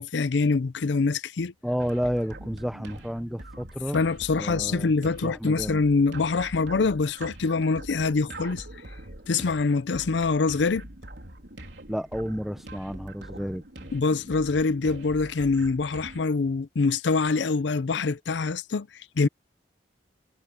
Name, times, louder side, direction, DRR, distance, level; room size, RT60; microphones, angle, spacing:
voice 1, 0.0-1.5 3.9-8.6 9.3-10.9 13.9-18.9 19.2-19.3, left 4 dB, 80° left, 0.5 m, -24 dB
voice 2, 1.6-4.0 4.3-4.9 5.2-5.8 11.9-13.9, equal, ahead, 0.5 m, -31 dB
sound 1, 1.8-16.2, right 1 dB, 75° right, 3.9 m, -43 dB
head